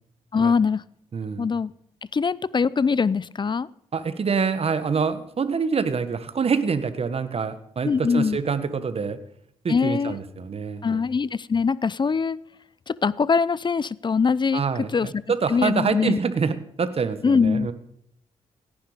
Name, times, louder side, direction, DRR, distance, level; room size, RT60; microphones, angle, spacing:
voice 1, 0.3-0.8 1.4-1.7 2.1-3.7 7.8-8.4 9.7-10.2 10.8-12.4 12.9-14.6 14.9-15.1 15.5-16.2 17.2-17.7, left 5 dB, 35° left, 21 dB, 0.6 m, -22 dB
voice 2, 1.1-1.5 3.9-9.2 9.6-11.0 14.5-17.7, right 5 dB, 50° right, 11 dB, 1.6 m, -26 dB
17.0 x 10.5 x 5.1 m, 0.70 s
supercardioid pair, 55°, 13 cm